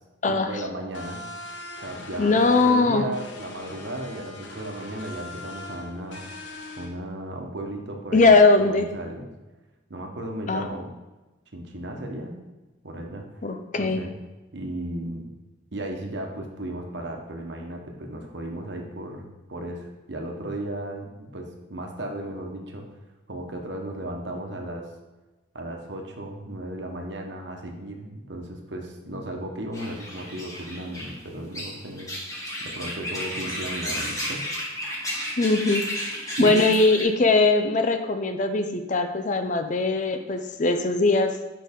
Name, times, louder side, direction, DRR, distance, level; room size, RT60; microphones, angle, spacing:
voice 1, 0.3-1.2 1.8-6.2 6.8-8.3 8.6-9.3 9.9-10.9 11.5-12.4 12.8-13.3 13.7-14.1 14.5-15.3 15.7-22.9 23.3-24.9 25.5-32.1 32.6-34.4 35.2-35.3 36.4-36.7, right 1 dB, 65° right, 2 dB, 1.1 m, -35 dB
sound 1, 0.9-6.9, left 1 dB, 70° left, 0.9 m, -40 dB
voice 2, 2.2-3.1 8.1-8.9 10.5-10.7 13.4-14.0 35.4-35.9 36.4-41.4, left 3 dB, 40° left, 7 dB, 0.5 m, -20 dB
sound 2, 29.7-37.0, equal, 15° left, 1.3 m, -33 dB
6.6 x 5.4 x 3.6 m, 1.1 s
head